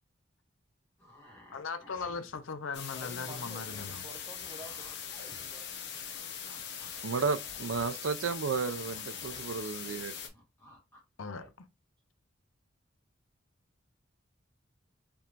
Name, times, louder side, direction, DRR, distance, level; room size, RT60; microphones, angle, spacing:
sound 1, 1.0-5.9 6.1-9.6 9.8-11.0 11.3-11.5, left 1 dB, 15° left, 1.9 m, -57 dB
voice 1, 1.5-4.0 11.2-11.5, left 4 dB, 85° left, 0.6 m, -38 dB
sound 2, 2.7-10.3, left 7 dB, 60° left, 0.9 m, -41 dB
voice 2, 2.8-5.0 5.4-6.0 9.8-10.2, right 2 dB, 25° right, 0.9 m, -51 dB
voice 3, 7.0-10.1, right 5 dB, 85° right, 0.5 m, -33 dB
4.4 x 3.4 x 2.5 m
head